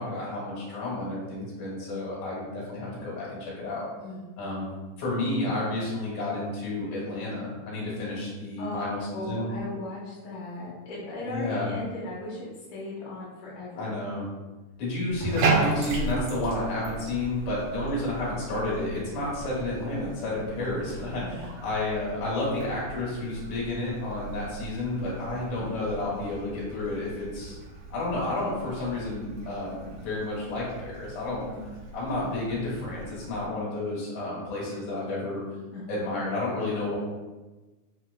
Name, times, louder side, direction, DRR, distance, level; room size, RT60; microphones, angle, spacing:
voice 1, 0.0-3.9 4.4-4.7 5.0-9.5 11.3-11.7 13.8-14.2 14.8-27.6 27.9-31.4 31.9-35.4 35.9-37.0, left 2 dB, 70° left, -6 dB, 2.6 m, -31 dB
voice 2, 9.1-14.0 21.2-21.5 25.6-25.8 31.5-31.7 35.7-35.9, left 2 dB, 90° left, -7 dB, 2.3 m, -37 dB
Bathtub (filling or washing), 15.1-33.5, right 3 dB, 80° right, 2.2 m, -36 dB
5.7 x 2.0 x 2.2 m, 1.2 s
omnidirectional pair, 3.5 m